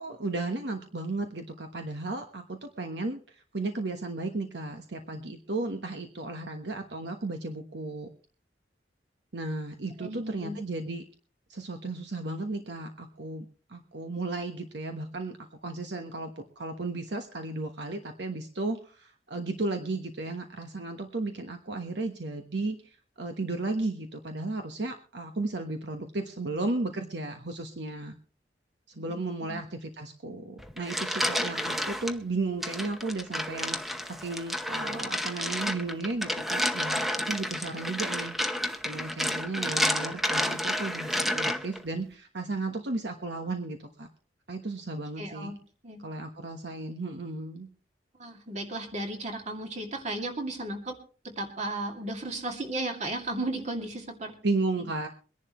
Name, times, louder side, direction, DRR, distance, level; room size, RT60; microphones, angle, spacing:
voice 1, 0.0-8.1 9.3-11.0 11.5-15.4 15.6-28.1 28.9-33.8 34.0-44.1 44.5-45.5 46.0-47.7 54.4-55.1, right 2 dB, 70° right, 5 dB, 1.2 m, -34 dB
voice 2, 10.0-10.6 29.1-29.6 45.2-45.6 45.8-46.0 48.2-51.0 51.4-54.3 54.8-54.9, right 2 dB, 40° right, 3 dB, 2.4 m, -35 dB
sound 1, 30.6-32.1 32.6-41.8, equal, ahead, 0.8 m, -30 dB
23.5 x 11.0 x 3.1 m, 0.39 s
head